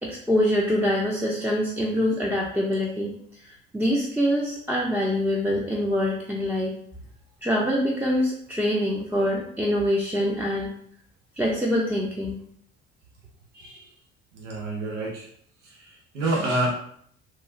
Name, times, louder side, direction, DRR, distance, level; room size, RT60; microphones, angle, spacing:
voice 1, 0.0-3.1 3.5-6.7 7.4-10.7 11.4-12.4, equal, 5° right, -4 dB, 0.5 m, -25 dB
voice 2, 13.5-13.9 14.3-15.3 15.6-16.8, right 2 dB, 90° right, -2 dB, 0.6 m, -28 dB
2.9 x 2.3 x 2.7 m, 0.63 s
hypercardioid pair, 55°, 35 cm